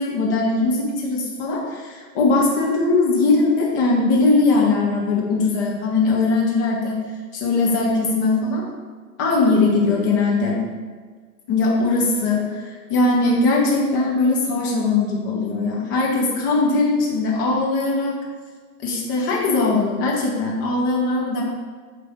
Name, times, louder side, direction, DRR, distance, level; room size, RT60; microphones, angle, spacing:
voice 1, 0.0-7.0 7.3-8.6 9.2-10.6 11.5-18.2 18.8-21.4, left 3 dB, 15° left, -3 dB, 0.5 m, -20 dB
8.2 x 3.3 x 4.9 m, 1.5 s
figure-of-eight pair, 125°, 50 cm